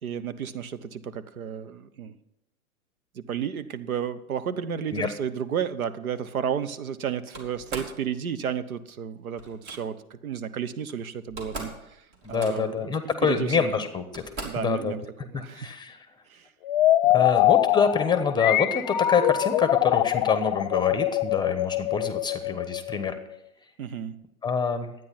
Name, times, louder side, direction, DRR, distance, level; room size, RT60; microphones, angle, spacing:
voice 1, 0.0-2.2 3.1-12.9 13.2-13.7 14.4-15.7 16.3-16.5 17.2-17.3 23.8-24.2, right 8 dB, 75° right, 13 dB, 1.0 m, -32 dB
Slam, 7.3-8.0 9.4-9.8 10.9-11.0 11.2-11.8 12.1-12.8 13.6-13.7 14.1-14.7, right 2 dB, 35° right, 3.2 m, -39 dB
voice 2, 12.2-14.2 14.6-15.0 15.5-16.1 17.1-23.2 24.4-24.9, left 5 dB, 10° left, 10 dB, 1.0 m, -26 dB
sound 1, 16.6-23.4, left 14 dB, 40° left, 0.4 m, -23 dB
12.0 x 9.3 x 5.9 m, 0.82 s
hypercardioid pair, 115°, 42 cm